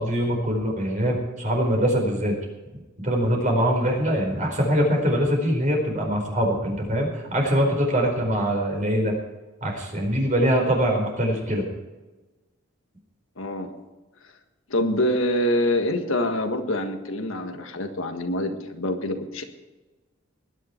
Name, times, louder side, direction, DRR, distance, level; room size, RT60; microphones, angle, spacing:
voice 1, 0.0-2.3 3.0-9.1 9.6-11.7, equal, 40° right, 1 dB, 4.6 m, -23 dB
voice 2, 13.4-13.7 14.7-19.4, left 1 dB, 80° left, 5 dB, 1.6 m, -25 dB
20.0 x 10.0 x 4.5 m, 1.2 s
head